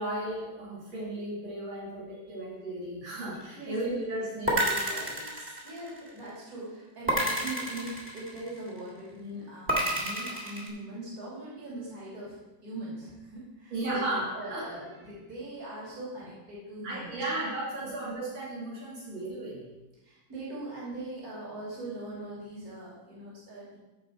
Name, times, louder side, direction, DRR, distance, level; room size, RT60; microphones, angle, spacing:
voice 1, 0.0-5.4 13.7-14.6 16.8-19.7, right 1 dB, 85° right, -7 dB, 3.6 m, -35 dB
sound 1, 4.5-6.2 7.1-8.7 9.7-10.7, right 1 dB, 5° right, 1.9 m, -29 dB
voice 2, 5.6-13.7 14.3-17.4 17.8-17.9 20.0-23.8, right 2 dB, 50° right, -6 dB, 3.3 m, -41 dB
14.5 x 4.9 x 4.5 m, 1.1 s
omnidirectional pair, 2.1 m